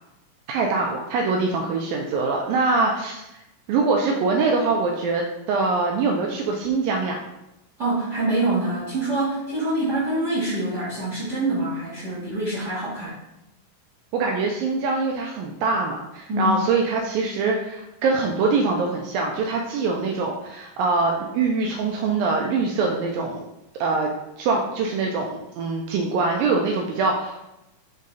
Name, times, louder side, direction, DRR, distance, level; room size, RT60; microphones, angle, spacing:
voice 1, 0.5-3.3 3.7-7.2 14.1-23.4 23.8-24.1 24.4-27.4, right 4 dB, 80° right, 1 dB, 2.2 m, -23 dB
voice 2, 7.8-13.1 16.3-16.5, right 2 dB, 45° right, -9 dB, 1.3 m, -25 dB
6.2 x 3.9 x 4.1 m, 0.92 s
omnidirectional pair, 4.3 m